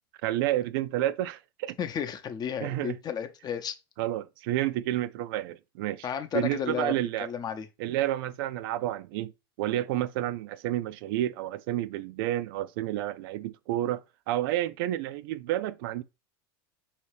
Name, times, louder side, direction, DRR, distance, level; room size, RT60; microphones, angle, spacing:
voice 1, 0.2-1.8 2.6-3.0 4.0-6.1 6.3-7.3 7.8-9.3 9.6-16.0, right 13 dB, 65° right, 0.4 m, -30 dB
voice 2, 1.8-3.8 6.0-7.7, left 8 dB, 30° left, 0.7 m, -33 dB
5.4 x 2.8 x 3.2 m
hypercardioid pair, 90°, 13 cm